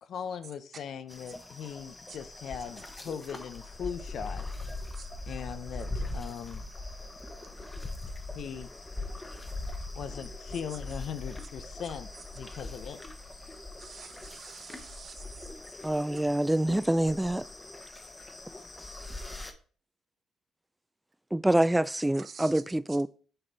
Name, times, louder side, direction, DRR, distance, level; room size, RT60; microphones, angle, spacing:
voice 1, 0.0-4.5 5.3-6.7 8.4-8.7 10.0-13.0, left 7 dB, 65° left, 0.6 m, -39 dB
sound 1, 1.1-19.5, left 2 dB, 20° left, 1.1 m, -41 dB
voice 2, 13.8-15.5 15.8-16.2 18.6-18.7 22.1-22.6 22.9-23.0, right 6 dB, 50° right, 0.9 m, -48 dB
voice 3, 15.8-17.4 21.3-23.1, right 1 dB, 10° right, 0.3 m, -26 dB
7.7 x 4.2 x 4.0 m
cardioid pair, 90°, 0 cm